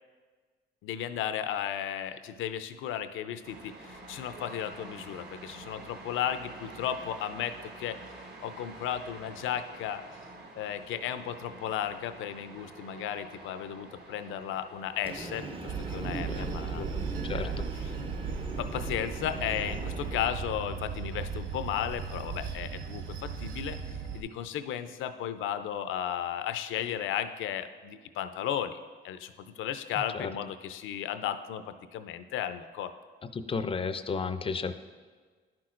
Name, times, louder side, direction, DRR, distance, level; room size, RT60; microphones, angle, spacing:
voice 1, 0.8-8.1 8.4-10.0 10.6-17.0 17.3-18.0 18.6-28.8 29.0-32.9, left 10 dB, 80° left, 11 dB, 0.5 m, -35 dB
sound 1, 3.4-21.5, right 2 dB, 55° right, 1.2 m, -49 dB
Train, 15.0-20.3, right 2 dB, 25° right, 0.6 m, -40 dB
Bell / Train, 15.7-24.2, right 6 dB, 75° right, 0.7 m, -37 dB
voice 2, 16.1-17.7 30.1-30.3 33.3-34.7, left 5 dB, 30° left, 11 dB, 0.4 m, -34 dB
11.0 x 6.0 x 2.5 m, 1.5 s
cardioid pair, 90°, 20 cm